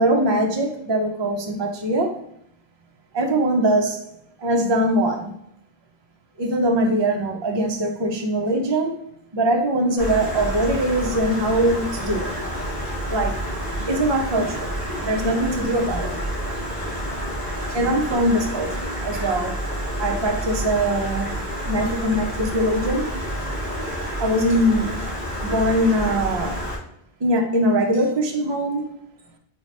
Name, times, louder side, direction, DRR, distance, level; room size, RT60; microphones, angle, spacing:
voice 1, 0.0-2.2 3.1-4.0 4.4-5.3 6.4-8.9 9.3-12.4 13.1-13.4 13.9-14.7 15.0-16.3 17.7-19.5 20.0-21.3 21.7-23.2 24.2-25.0 25.4-26.6 27.2-28.9, right 1 dB, 35° right, 2 dB, 0.5 m, -22 dB
Stream, 10.0-26.8, equal, 35° left, 1.8 m, -29 dB
3.8 x 2.9 x 3.2 m, 0.74 s
omnidirectional pair, 1.1 m